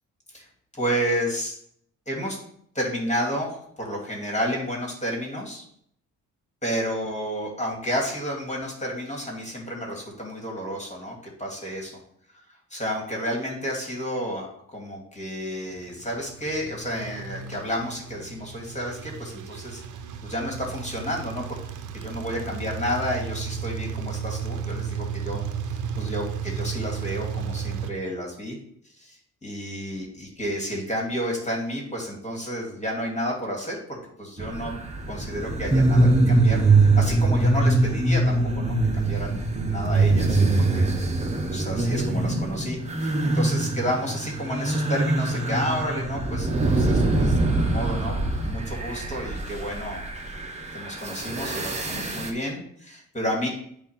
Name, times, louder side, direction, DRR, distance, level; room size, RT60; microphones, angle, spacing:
voice 1, 0.8-1.5 2.1-2.4 2.7-5.6 6.6-11.9 12.7-14.5 14.7-19.8 20.2-21.4 21.9-28.6 29.0-34.7 35.1-40.9 41.5-50.0 50.7-53.5, equal, 25° left, -1 dB, 2.4 m, -31 dB
sound 1, 15.9-27.9, right 6 dB, 85° right, 0.7 m, -33 dB
sound 2, 34.4-52.3, right 2 dB, 20° right, 1.0 m, -23 dB
8.3 x 2.8 x 5.8 m, 0.67 s
cardioid pair, 90°, 30 cm